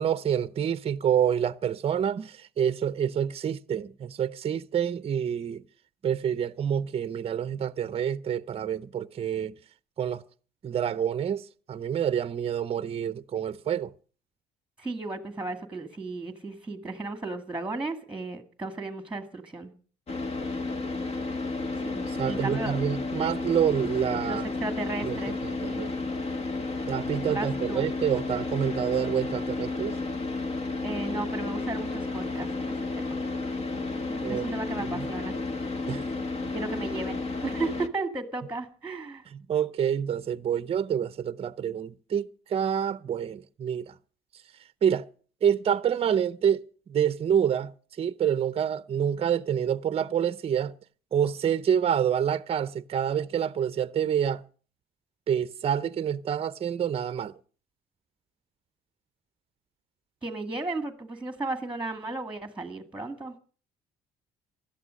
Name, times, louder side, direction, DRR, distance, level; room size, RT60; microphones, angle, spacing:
voice 1, 0.0-5.6 6.0-9.5 10.0-10.2 10.6-13.9 22.1-24.4 25.0-25.2 25.4-25.9 26.9-30.0 34.2-34.4 34.9-35.1 35.9-36.0 39.3-43.9 44.8-45.1 45.4-47.7 48.0-50.7 51.1-54.4 55.3-57.3, right 8 dB, 35° right, 0.6 m, -27 dB
voice 2, 14.8-19.7 21.8-22.8 24.3-25.9 27.3-27.9 30.8-33.2 34.1-35.4 36.5-39.2 60.2-63.3, right 3 dB, 5° right, 1.9 m, -35 dB
Car / Idling, 20.1-37.9, left 3 dB, 35° left, 1.4 m, -32 dB
16.0 x 12.0 x 6.3 m
cardioid pair, 110°, 17 cm